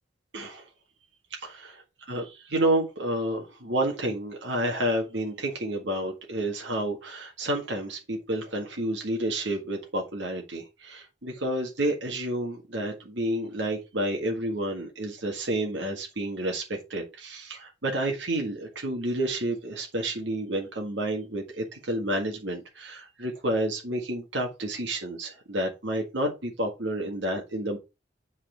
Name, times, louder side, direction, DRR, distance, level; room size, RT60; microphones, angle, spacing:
voice 1, 0.3-0.6 1.3-1.5 2.1-27.8, right 1 dB, 75° right, 1.7 m, -30 dB
7.8 x 4.3 x 4.4 m
head